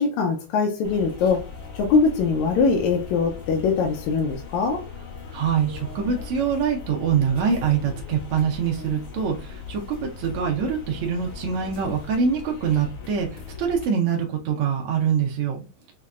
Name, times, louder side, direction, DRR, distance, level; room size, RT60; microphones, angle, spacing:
voice 1, 0.0-1.4 1.7-4.8, left 5 dB, 80° left, 1 dB, 2.0 m, -22 dB
sound 1, 0.8-13.8, left 5 dB, 60° left, 1.3 m, -39 dB
voice 2, 5.3-15.6, right 7 dB, 75° right, 0 dB, 1.3 m, -24 dB
5.6 x 2.2 x 2.4 m, 0.30 s
omnidirectional pair, 3.3 m